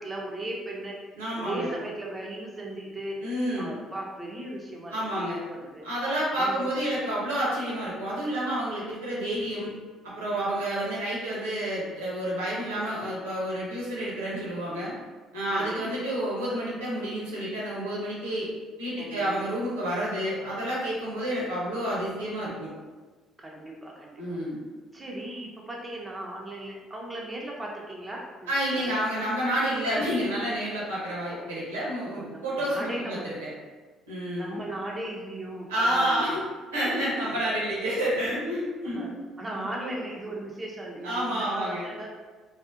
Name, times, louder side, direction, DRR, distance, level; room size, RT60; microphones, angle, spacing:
voice 1, 0.0-1.0 1.4-3.2 3.6-5.8 6.3-6.7 10.3-10.6 15.5-15.9 19.0-19.4 23.4-24.4 24.9-29.0 31.3-31.5 32.0-33.4 34.3-36.4 37.3-37.6 38.8-39.1 39.4-42.2, right 1 dB, 25° right, -2 dB, 0.5 m, -37 dB
voice 2, 1.2-1.7 3.2-3.8 4.9-5.4 5.8-9.7 10.0-14.9 15.3-18.5 18.8-22.7 24.2-24.6 28.5-33.5 34.1-34.6 35.7-36.4 36.7-39.1 39.6-39.7 41.0-41.9, right 1 dB, 85° right, -6 dB, 0.7 m, -29 dB
2.6 x 2.0 x 2.4 m, 1.4 s
hypercardioid pair, 50°, 0 cm